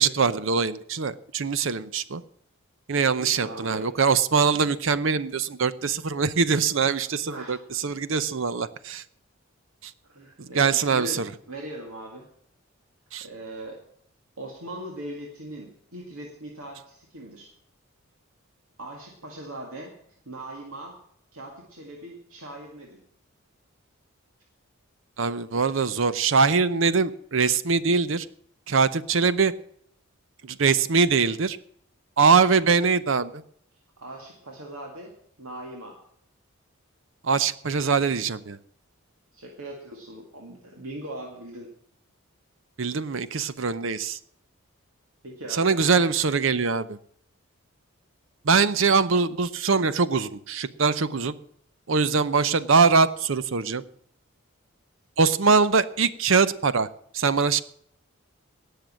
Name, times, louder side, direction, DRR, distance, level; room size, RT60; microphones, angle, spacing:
voice 1, 0.0-2.2 2.9-9.0 9.8-9.9 10.6-11.3 13.1-13.3 25.2-28.3 28.7-29.5 30.4-31.6 32.2-33.4 37.2-38.6 42.8-44.2 45.6-47.0 48.4-51.3 51.9-53.8 55.2-56.9 57.1-57.6, right 5 dB, 65° right, 15 dB, 0.7 m, -22 dB
voice 2, 3.2-3.9 7.0-7.8 10.0-12.3 13.2-13.8 14.4-17.5 18.8-20.0 20.3-21.0 21.3-23.0 34.0-35.1 35.4-36.0 39.3-41.7 45.2-45.8, right 1 dB, 80° right, 0 dB, 2.1 m, -40 dB
18.5 x 6.7 x 7.4 m, 0.67 s
head